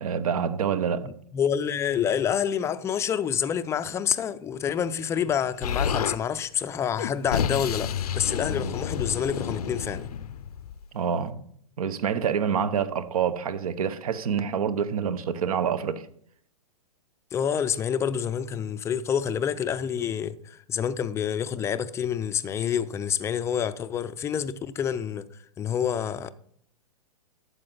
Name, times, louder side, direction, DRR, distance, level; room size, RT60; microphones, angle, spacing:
voice 1, 0.0-1.1 8.6-8.7 10.9-11.5 11.8-16.1, right 7 dB, 65° right, 1.0 m, -27 dB
voice 2, 1.0-10.1 17.3-25.3 25.6-26.3, left 8 dB, 15° left, 0.4 m, -28 dB
Explosion, 5.6-6.2 7.0-10.8, left 8 dB, 75° left, 0.6 m, -30 dB
12.0 x 7.9 x 3.9 m
hypercardioid pair, 125°, 19 cm